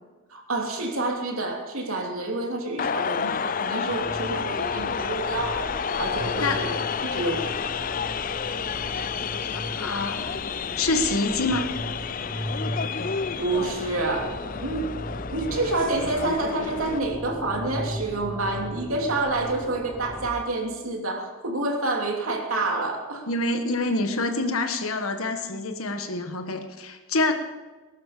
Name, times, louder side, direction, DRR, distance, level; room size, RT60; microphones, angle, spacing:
voice 1, 0.3-5.7 6.0-7.5 13.4-14.9 15.3-23.2, right 2 dB, 85° right, 1 dB, 3.0 m, -28 dB
sound 1, 2.8-17.0, left 6 dB, 40° left, 0.4 m, -30 dB
sound 2, 3.9-20.3, equal, 15° right, 1.0 m, -37 dB
voice 2, 9.5-10.5 10.8-11.7 23.3-27.3, left 2 dB, 90° left, 6 dB, 1.6 m, -26 dB
20.0 x 11.5 x 5.1 m, 1.3 s
head